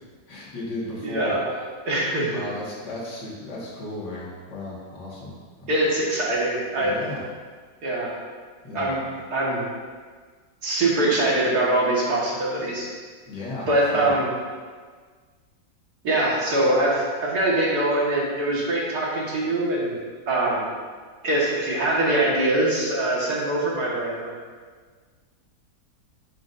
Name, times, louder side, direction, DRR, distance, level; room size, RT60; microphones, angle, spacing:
voice 1, 0.3-1.3 2.3-5.7 6.8-7.2 8.6-8.9 13.3-14.1, left 2 dB, 85° left, -5 dB, 2.6 m, -35 dB
voice 2, 1.0-1.4 1.9-2.3 5.7-7.0 7.8-8.1 8.7-9.0 9.3-9.7 10.6-12.9 13.7-14.3 16.0-20.0 20.3-20.7 21.2-24.3, right 1 dB, 65° right, -5 dB, 2.3 m, -23 dB
10.5 x 7.5 x 2.7 m, 1.5 s
omnidirectional pair, 1.9 m